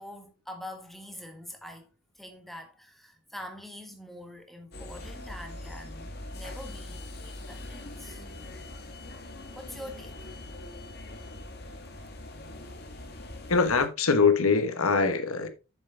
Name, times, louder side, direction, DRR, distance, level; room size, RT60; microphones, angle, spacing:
voice 1, 0.0-1.9 2.1-8.2 9.5-10.3, left 1 dB, ahead, 1.5 m, -44 dB
sound 1, 4.7-13.9, left 1 dB, 50° left, 1.5 m, -42 dB
voice 2, 13.5-15.5, left 4 dB, 90° left, 1.3 m, -23 dB
7.8 x 6.8 x 3.8 m
head